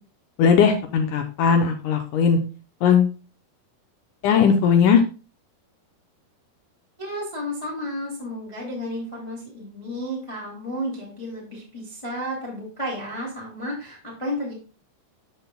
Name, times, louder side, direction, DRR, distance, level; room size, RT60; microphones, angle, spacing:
voice 1, 0.4-2.4 2.8-3.1 4.2-5.0, left 6 dB, 75° left, 6 dB, 1.9 m, -18 dB
voice 2, 7.0-14.5, equal, 10° left, -3 dB, 1.7 m, -32 dB
12.5 x 5.4 x 2.2 m, 0.34 s
omnidirectional pair, 4.3 m